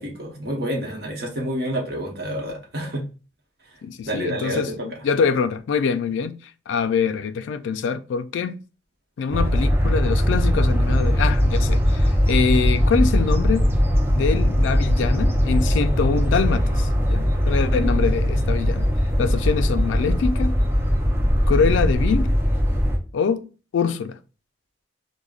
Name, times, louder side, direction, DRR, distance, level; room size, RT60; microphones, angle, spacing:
voice 1, 0.0-3.0 4.0-4.9 17.7-18.1, equal, 55° right, 0.9 m, -29 dB
voice 2, 3.8-6.4 6.7-8.6 9.2-13.7 14.1-18.9 19.2-20.6 21.5-22.4 23.1-24.2, left 5 dB, 75° left, 0.3 m, -24 dB
sound 1, 9.3-23.0, equal, 10° right, 0.4 m, -20 dB
4.9 x 2.1 x 2.3 m
head